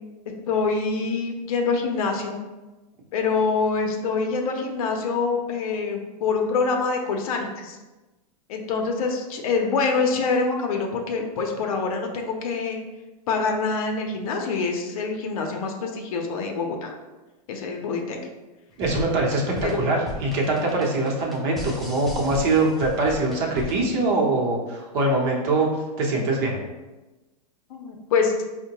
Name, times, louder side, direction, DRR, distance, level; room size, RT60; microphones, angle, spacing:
voice 1, 0.5-2.4 3.1-7.8 8.5-12.8 13.3-16.9 17.5-18.2 19.6-20.0 27.7-28.3, left 4 dB, 60° left, 3 dB, 0.6 m, -25 dB
sound 1, 18.7-24.0, left 1 dB, ahead, 0.3 m, -36 dB
voice 2, 18.8-19.4 19.7-25.7 26.0-26.6, right 2 dB, 45° right, -1 dB, 0.8 m, -23 dB
4.4 x 2.1 x 2.9 m, 1.1 s
hypercardioid pair, 140°, 20 cm